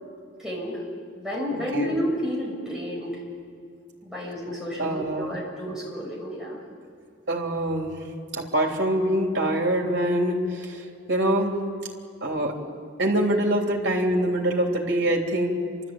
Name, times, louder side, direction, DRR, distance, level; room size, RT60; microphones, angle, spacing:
voice 1, 0.4-0.8 1.2-3.1 4.0-6.6, equal, 5° right, -5 dB, 7.1 m, -30 dB
voice 2, 4.8-5.3 7.3-7.9 8.3-10.8 11.1-11.5 12.2-12.5 13.0-15.5, right 1 dB, 65° right, 0 dB, 3.4 m, -24 dB
29.5 x 13.5 x 8.8 m, 2.2 s
head